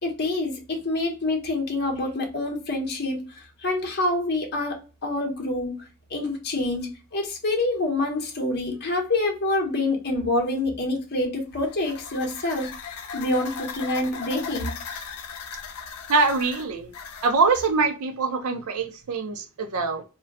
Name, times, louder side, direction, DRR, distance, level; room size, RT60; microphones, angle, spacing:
voice 1, 0.0-12.7 13.1-14.7, left 2 dB, 50° left, 0.8 m, -27 dB
sound 1, 11.5-17.7, left 6 dB, 90° left, 0.5 m, -38 dB
voice 2, 16.1-16.9 17.2-20.0, right 4 dB, 70° right, 0.5 m, -23 dB
2.2 x 2.1 x 3.4 m
head